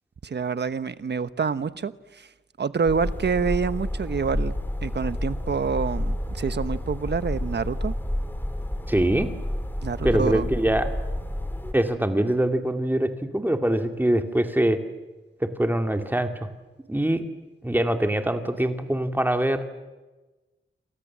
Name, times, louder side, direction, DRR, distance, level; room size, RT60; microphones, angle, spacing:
voice 1, 0.2-2.3 2.6-4.5 4.8-7.9 9.8-10.5, right 5 dB, 55° right, 13 dB, 1.2 m, -27 dB
sound 1, 2.9-11.7, left 1 dB, 10° left, 2.6 m, -30 dB
voice 2, 8.9-9.3 10.0-10.9 11.7-14.8 15.4-16.5 16.9-17.2 17.6-19.7, right 1 dB, 10° right, 5 dB, 2.5 m, -23 dB
28.5 x 28.0 x 7.5 m, 1.2 s
wide cardioid pair, 145°, 21 cm